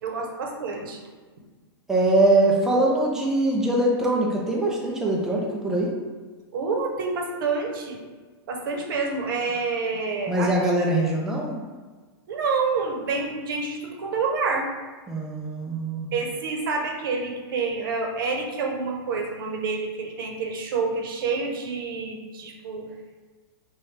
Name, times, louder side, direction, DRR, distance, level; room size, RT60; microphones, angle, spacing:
voice 1, 0.0-1.0 6.5-8.0 8.5-10.5 12.3-14.7 16.1-22.9, right 4 dB, 55° right, 1 dB, 0.9 m, -28 dB
voice 2, 1.9-5.9 10.3-11.6 15.1-16.1, right 2 dB, 5° right, -3 dB, 0.4 m, -22 dB
5.6 x 2.7 x 3.3 m, 1.4 s
hypercardioid pair, 165°, 14 cm